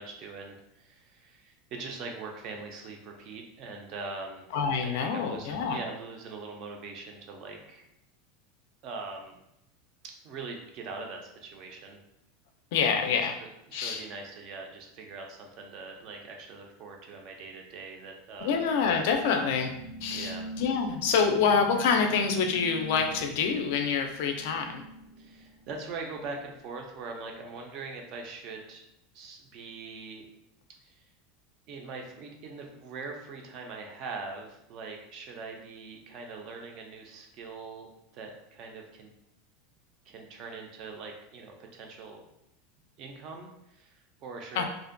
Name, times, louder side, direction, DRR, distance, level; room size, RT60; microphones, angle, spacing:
voice 1, 0.0-4.5 4.8-7.9 8.8-9.4 10.0-12.0 13.4-18.6 20.1-20.4 25.2-28.8 29.1-30.2 30.8-31.1 31.7-39.1 40.0-42.2 43.0-44.6, right 4 dB, 35° right, 2 dB, 0.4 m, -42 dB
voice 2, 4.5-5.8 12.7-13.3 13.7-14.0 18.4-19.7 20.0-24.8 44.6-44.7, left 6 dB, 55° left, 4 dB, 0.3 m, -26 dB
sound 1, 18.4-26.2, right 1 dB, 75° right, 0.7 m, -44 dB
2.4 x 2.1 x 2.5 m, 0.82 s
supercardioid pair, 180°, 0 cm